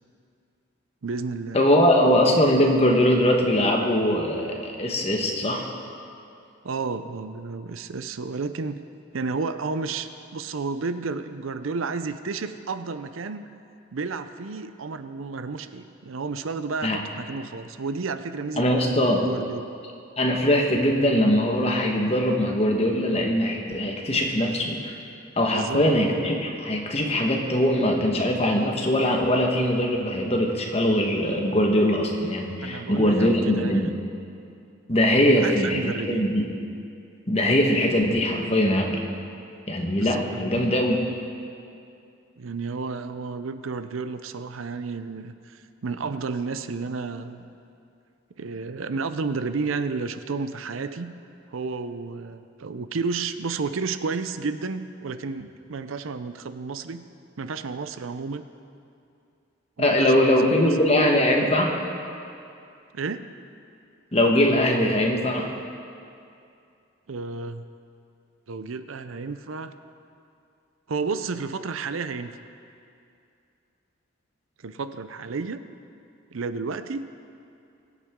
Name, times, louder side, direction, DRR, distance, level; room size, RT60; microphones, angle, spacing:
voice 1, 1.0-1.6 6.6-8.8 9.1-13.4 13.9-19.7 25.5-25.8 32.6-33.9 35.3-36.3 40.0-40.7 42.4-47.5 48.4-51.1 51.5-57.0 57.4-58.5 59.8-60.7 62.9-63.3 67.1-67.6 68.5-69.7 70.9-72.4 74.6-75.6 76.3-77.1, right 4 dB, 85° right, 11 dB, 0.6 m, -32 dB
voice 2, 1.5-5.7 16.8-17.0 18.6-19.3 20.2-24.9 25.4-33.9 34.9-36.5 37.3-39.0 39.7-41.0 59.8-61.7 64.1-65.5, left 1 dB, 30° left, 1 dB, 1.3 m, -21 dB
22.5 x 8.6 x 3.7 m, 2.5 s
head